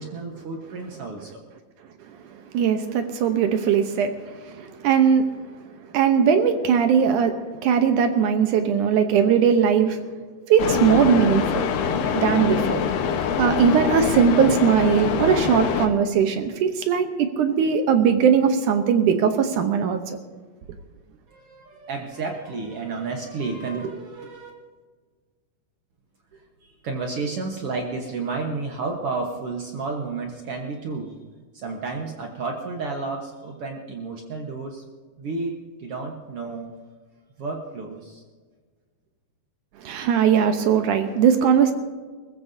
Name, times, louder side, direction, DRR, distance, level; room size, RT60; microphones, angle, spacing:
voice 1, 0.0-1.4 21.3-24.5 26.3-31.1 31.5-34.8 35.2-36.7 37.4-38.2, right 4 dB, 90° right, 1 dB, 1.2 m, -31 dB
voice 2, 2.5-5.3 5.9-10.0 10.5-11.7 12.2-12.8 13.4-20.2 39.8-41.7, right 7 dB, 75° right, 7 dB, 1.9 m, -20 dB
sound 1, 10.6-15.9, left 7 dB, 85° left, 3.2 m, -24 dB
24.5 x 15.0 x 2.7 m, 1.5 s
omnidirectional pair, 4.6 m